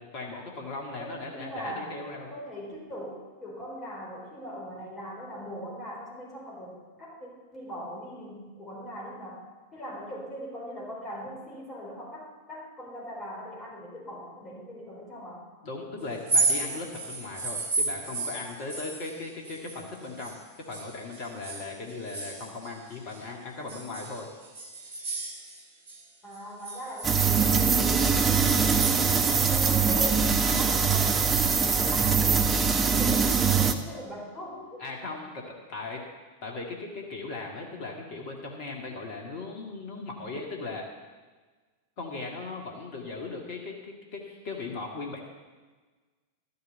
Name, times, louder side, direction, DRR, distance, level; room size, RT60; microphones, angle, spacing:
voice 1, 0.0-2.3 15.6-20.4 20.7-24.3 34.8-35.4 35.7-36.0 36.4-40.8 42.0-45.2, left 3 dB, 45° left, 0 dB, 2.0 m, -38 dB
voice 2, 1.0-2.0 2.3-9.5 9.7-15.5 26.2-34.9, equal, 20° left, -3 dB, 4.4 m, -40 dB
sound 1, 16.1-20.4 20.7-23.2 23.7-26.0 26.3-29.8, right 3 dB, 55° right, 2.4 m, -33 dB
sound 2, 27.0-33.7, right 5 dB, 20° right, 0.8 m, -23 dB
12.5 x 6.8 x 8.0 m, 1.4 s
figure-of-eight pair, 90°, 0 cm